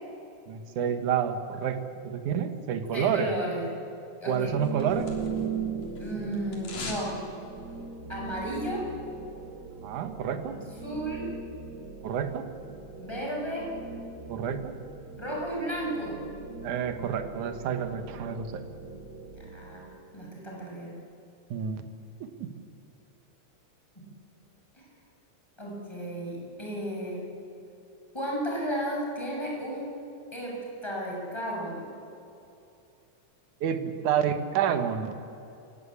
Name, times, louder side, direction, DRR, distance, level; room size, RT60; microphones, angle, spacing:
voice 1, 0.5-3.3 4.3-5.1 9.8-10.6 12.0-12.5 14.3-14.7 16.6-18.6 21.5-21.8 22.2-22.5 33.6-35.2, right 8 dB, 80° right, 8 dB, 2.8 m, -29 dB
voice 2, 2.9-3.7 4.2-4.5 6.0-7.2 8.1-8.9 10.5-11.3 13.0-13.7 15.2-16.2 19.4-21.0 24.0-24.1 24.7-24.9 25.6-27.2 28.1-29.9 30.3-31.9, right 1 dB, 10° left, -3 dB, 7.1 m, -34 dB
sound 1, 4.3-5.6 5.8-7.1 7.4-7.5, left 3 dB, 85° left, 4.8 m, -41 dB
sound 2, 4.4-20.1, right 5 dB, 45° right, 1.5 m, -39 dB
29.0 x 17.0 x 8.7 m, 2.7 s
omnidirectional pair, 3.5 m